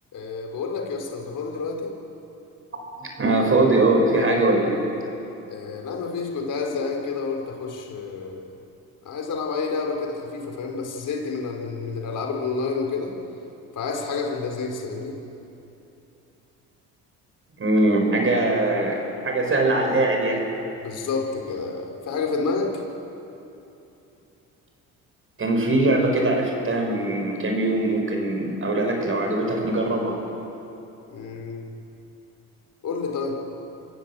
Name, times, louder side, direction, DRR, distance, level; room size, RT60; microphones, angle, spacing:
voice 1, 0.1-1.9 5.5-8.4 9.0-13.1 13.8-15.1 20.8-22.7 31.1-31.6 32.8-33.4, left 4 dB, 60° left, 1 dB, 4.2 m, -29 dB
voice 2, 3.0-4.8 17.6-20.4 25.4-30.2, right 2 dB, 40° right, 2 dB, 6.1 m, -21 dB
26.5 x 15.5 x 7.6 m, 2.9 s
supercardioid pair, 75°, 34 cm